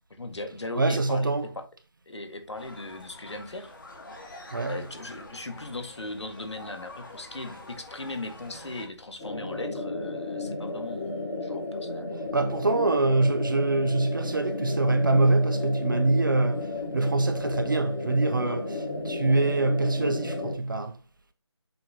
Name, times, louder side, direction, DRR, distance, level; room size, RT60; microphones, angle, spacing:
voice 1, 0.1-1.6 2.1-3.7 4.7-12.2 18.5-18.6, left 2 dB, 75° left, 1.9 m, -38 dB
voice 2, 0.8-1.5 4.5-4.8 12.3-20.9, right 2 dB, 45° right, 0.8 m, -24 dB
sound 1, 2.5-8.9, left 2 dB, 45° left, 2.5 m, -46 dB
sound 2, 9.2-20.5, left 2 dB, 20° left, 2.4 m, -33 dB
7.6 x 5.9 x 2.9 m
figure-of-eight pair, 170°, 15 cm